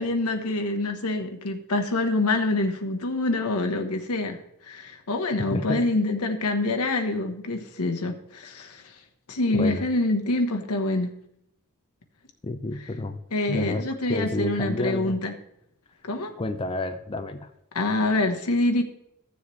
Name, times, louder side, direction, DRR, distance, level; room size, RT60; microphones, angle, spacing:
voice 1, 0.0-8.8 9.3-11.1 13.3-15.3 16.0-16.3 17.7-18.8, left 2 dB, 85° left, 4 dB, 1.1 m, -26 dB
voice 2, 5.4-5.9 9.5-9.8 12.4-13.2 13.5-13.8 14.1-15.2 16.4-17.5, left 2 dB, 25° left, 7 dB, 0.5 m, -30 dB
14.5 x 7.2 x 3.2 m, 0.78 s
head